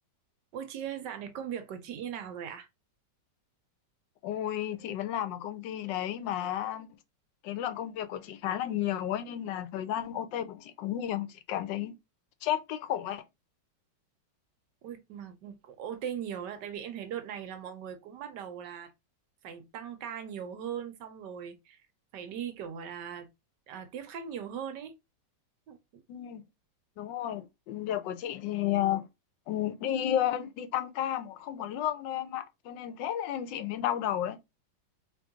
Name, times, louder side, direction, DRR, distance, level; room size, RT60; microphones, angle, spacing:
voice 1, 0.5-2.7 14.8-18.9 19.4-21.9 22.1-23.3 23.7-25.0 25.7-26.0, right 8 dB, 75° right, 1.4 m, -39 dB
voice 2, 4.2-6.9 7.4-11.9 12.4-13.2 26.1-26.4 27.0-29.1 29.5-34.4, left 11 dB, 85° left, 1.3 m, -32 dB
3.8 x 3.3 x 3.6 m
omnidirectional pair, 1.9 m